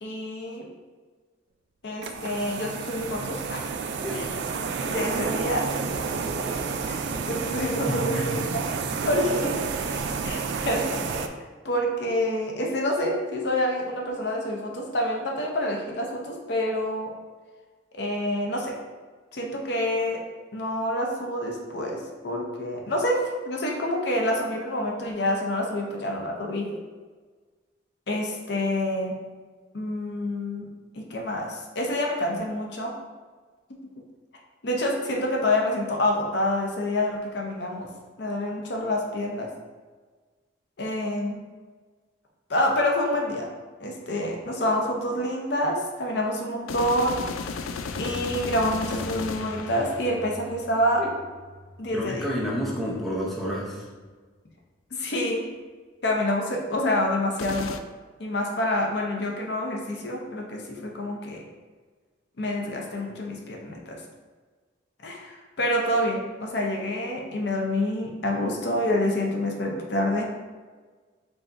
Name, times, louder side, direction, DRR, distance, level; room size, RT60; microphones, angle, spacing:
voice 1, 0.0-0.7 1.8-3.7 4.1-4.3 4.9-5.7 6.8-8.6 9.1-9.6 10.2-11.3 11.6-17.1 17.9-18.8 19.3-20.2 20.5-26.8 28.1-29.1 29.7-30.7 30.9-32.9 33.7-33.8 34.6-37.9 38.2-39.5 40.8-41.4 42.5-43.5 43.8-47.2 48.0-51.0 51.8-52.3 54.9-55.5 56.0-57.7 58.2-61.4 62.4-64.0 65.0-70.2, left 1 dB, 55° left, 0 dB, 0.6 m, -27 dB
sound 1, 2.0-11.3, right 5 dB, 60° right, 0.3 m, -30 dB
voice 2, 7.9-8.2 51.0-51.1 51.9-53.8, equal, ahead, -6 dB, 0.7 m, -29 dB
sound 2, 46.7-50.7 57.4-57.8, left 5 dB, 90° left, 0.3 m, -34 dB
sound 3, 47.6-54.2, equal, 35° left, 0.9 m, -45 dB
4.7 x 3.8 x 2.6 m, 1.4 s
head